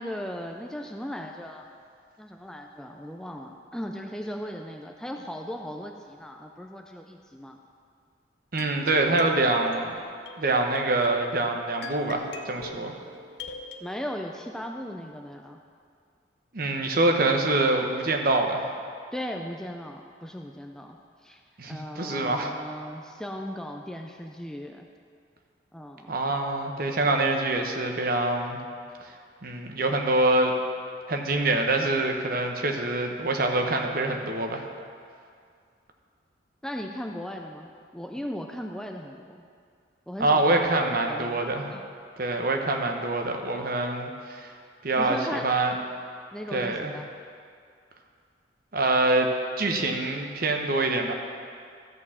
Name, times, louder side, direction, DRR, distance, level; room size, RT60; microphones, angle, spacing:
voice 1, 0.0-1.7 2.2-7.6 13.8-15.6 19.1-21.0 21.2-21.4 21.7-24.9 25.7-26.3 36.6-39.4 40.1-40.7 41.0-41.4 41.7-41.8 45.0-45.5 46.3-47.1, equal, 5° left, 3 dB, 0.4 m, -37 dB
voice 2, 8.5-9.9 10.4-12.9 16.5-18.7 21.6-22.5 26.1-28.6 29.4-30.5 31.1-34.6 40.2-41.7 42.2-44.5 44.8-45.7 46.5-46.9 48.7-49.3 49.6-51.1, right 2 dB, 55° right, 3 dB, 0.9 m, -25 dB
sound 1, 8.6-13.8, left 4 dB, 65° left, 0.7 m, -43 dB
13.5 x 4.5 x 7.2 m, 2.2 s
head